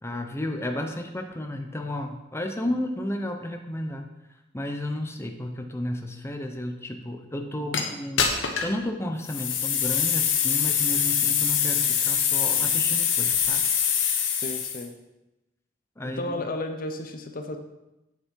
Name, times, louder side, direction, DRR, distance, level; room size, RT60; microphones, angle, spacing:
voice 1, 0.0-4.0 4.5-8.3 8.6-13.7 16.0-16.4, left 1 dB, 15° left, 4 dB, 0.8 m, -32 dB
sound 1, 7.7-7.8 8.2-8.8 9.2-14.8, left 8 dB, 85° left, 1.2 m, -24 dB
voice 2, 14.4-14.9 16.0-17.6, left 2 dB, 50° left, 6 dB, 0.7 m, -33 dB
8.2 x 7.2 x 4.7 m, 0.96 s
head